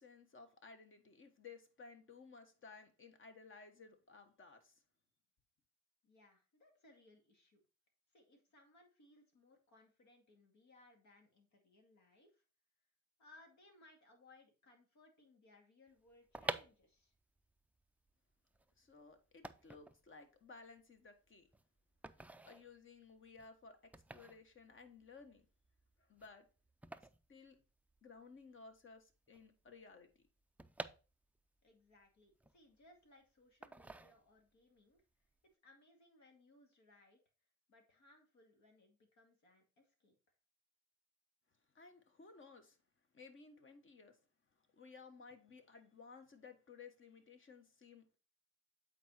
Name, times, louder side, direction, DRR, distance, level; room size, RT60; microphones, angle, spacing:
voice 1, 0.0-4.8 18.8-21.5 22.1-25.4 26.0-26.4 27.3-27.6 28.0-30.2 41.7-42.8 43.1-44.2 44.6-48.2, left 4 dB, 40° left, 1.4 m, -58 dB
voice 2, 6.0-7.6 8.1-12.4 13.2-17.1 31.6-35.0 35.4-37.2 37.7-40.2, left 2 dB, 65° left, 2.3 m, -66 dB
sound 1, 16.1-28.2 28.5-28.6 28.8-31.6 32.0-33.1 33.6-34.6 35.0-35.3, right 2 dB, 5° right, 0.4 m, -50 dB
8.3 x 4.3 x 4.2 m
cardioid pair, 90°, 30 cm